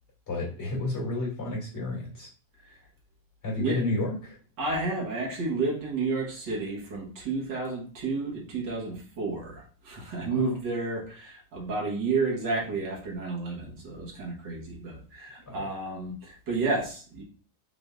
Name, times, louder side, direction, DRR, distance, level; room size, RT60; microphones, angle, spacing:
voice 1, 0.3-2.3 3.4-4.4 10.3-10.5 15.5-15.7, left 2 dB, 35° left, -3 dB, 2.5 m, -31 dB
voice 2, 4.6-17.2, right 3 dB, 75° right, -1 dB, 1.9 m, -31 dB
5.5 x 3.8 x 2.4 m, 0.40 s
omnidirectional pair, 2.0 m